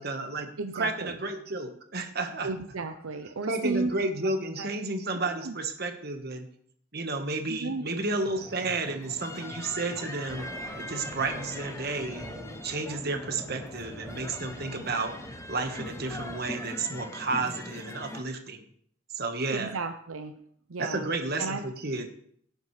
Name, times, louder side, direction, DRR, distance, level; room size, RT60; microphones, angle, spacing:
voice 1, 0.0-2.5 3.5-6.5 6.9-10.5 10.8-12.3 12.6-15.1 15.5-18.6 19.1-19.7 20.8-22.1, right 3 dB, 50° right, 5 dB, 1.4 m, -32 dB
voice 2, 0.6-1.2 2.4-3.9 4.2-4.3 4.6-4.7 5.2-5.5 7.5-7.8 19.5-20.4 20.7-21.1 21.4-21.7, right 3 dB, 80° right, 7 dB, 0.7 m, -33 dB
sound 1, 7.9-18.2, left 1 dB, 15° left, 0.7 m, -42 dB
Thunder, 10.2-16.4, equal, 10° right, 5.4 m, -46 dB
17.5 x 9.0 x 3.3 m, 0.64 s
head